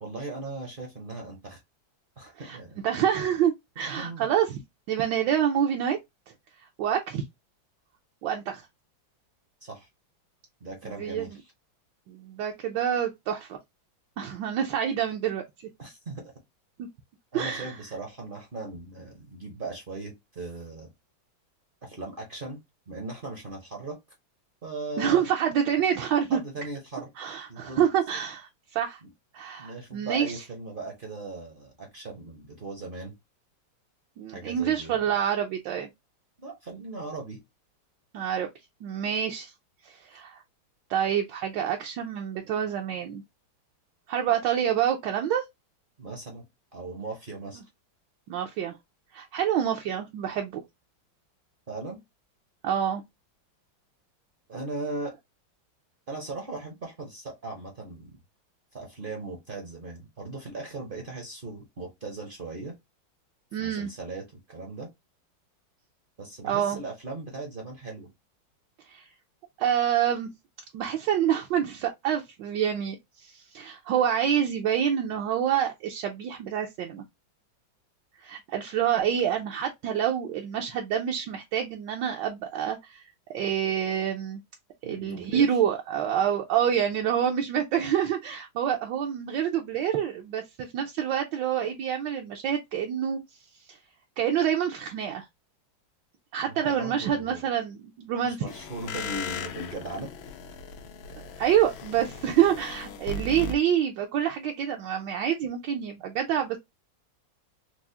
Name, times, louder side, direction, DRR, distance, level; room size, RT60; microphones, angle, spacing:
voice 1, 0.0-1.6 2.2-2.8 3.9-4.3 9.6-9.9 10.6-11.4 15.8-16.2 17.3-20.9 21.8-22.6 22.9-24.0 24.6-25.3 26.3-27.1 27.5-27.8 29.0-29.1 29.6-33.2 34.3-35.2 36.4-37.4 46.0-46.4 46.7-47.6 51.7-52.0 54.5-55.1 56.1-58.2 58.7-62.7 63.6-64.9 66.2-68.1 84.8-85.6 96.5-97.4 98.2-100.1, right 3 dB, 50° right, 0.6 m, -38 dB
voice 2, 2.8-4.6 4.9-6.0 6.8-7.2 8.2-8.7 11.0-11.3 12.1-13.6 14.2-15.4 16.8-16.9 17.3-17.7 25.0-26.4 27.2-29.0 29.3-30.4 34.2-35.9 38.1-38.5 38.8-39.5 39.8-40.4 40.9-43.2 44.1-45.4 48.3-48.7 49.1-50.6 52.6-53.0 63.5-63.9 66.4-66.8 68.9-69.1 69.6-70.3 70.7-77.0 78.2-83.0 83.3-84.4 84.8-93.2 93.7-93.8 94.2-95.3 96.3-98.4 101.4-106.6, right 9 dB, 75° right, 1.2 m, -27 dB
sound 1, 98.5-103.5, left 3 dB, 85° left, 1.5 m, -38 dB
4.7 x 2.0 x 2.7 m
omnidirectional pair, 2.2 m